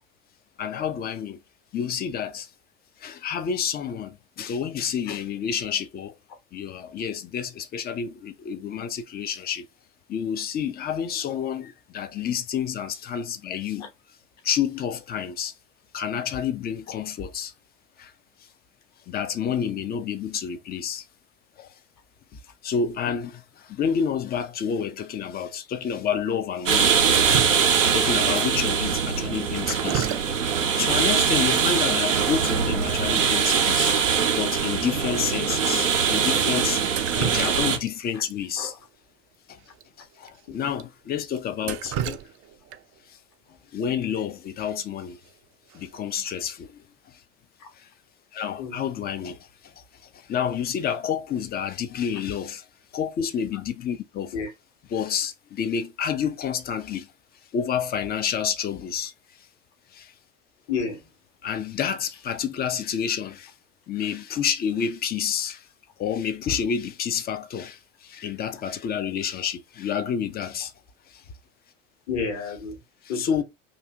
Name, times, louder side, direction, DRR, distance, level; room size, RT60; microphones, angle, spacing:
voice 1, 0.6-1.4 1.7-2.5 3.0-6.2 6.5-9.7 10.1-13.9 14.4-15.5 15.9-17.5 18.0-18.1 19.1-21.1 21.6-21.7 22.3-27.0 27.9-30.2 30.6-36.8 37.2-38.8 39.5-39.6 40.0-42.0 43.1-43.2 43.7-45.2 45.7-47.2 47.7-47.9 48.3-52.7 52.9-54.4 54.9-57.1 57.5-59.1 59.4-59.5 59.9-60.1 61.4-63.5 63.9-65.7 66.0-70.7 71.1-71.2 73.0-73.4, left 7 dB, 25° left, 0.5 m, -29 dB
sound 1, 26.7-37.8, right 7 dB, 85° right, 0.6 m, -22 dB
Drip, 27.1-28.1 29.6-30.6 30.9-31.0 32.0-32.1 32.3-32.6 32.9-33.0 33.4-33.5 34.0-34.1 34.6-34.7 35.4-35.6 36.7-37.9 38.3-38.4 39.7-39.8 40.2-40.3 40.8-40.9 41.4-43.0 45.0-45.3 45.7-46.1, right 10 dB, 35° right, 0.5 m, -33 dB
voice 2, 60.7-61.0 72.1-72.7 73.1-73.3, left 5 dB, 45° left, 1.2 m, -30 dB
2.7 x 2.6 x 3.4 m
figure-of-eight pair, 65°, 37 cm